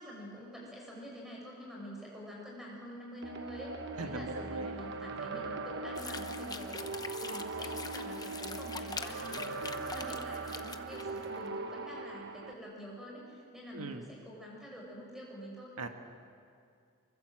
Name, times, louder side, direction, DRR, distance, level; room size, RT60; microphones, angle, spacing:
voice 1, 0.0-3.7 4.0-6.9 7.2-15.7, equal, ahead, -3 dB, 7.0 m, -47 dB
sound 1, 3.2-12.5, right 3 dB, 55° right, 1.2 m, -40 dB
voice 2, 4.0-4.7 13.7-14.1 15.8-15.9, right 3 dB, 85° right, 5 dB, 1.5 m, -40 dB
sound 2, 6.0-11.4, left 5 dB, 15° left, 0.8 m, -44 dB
25.0 x 23.5 x 7.7 m, 2.3 s
head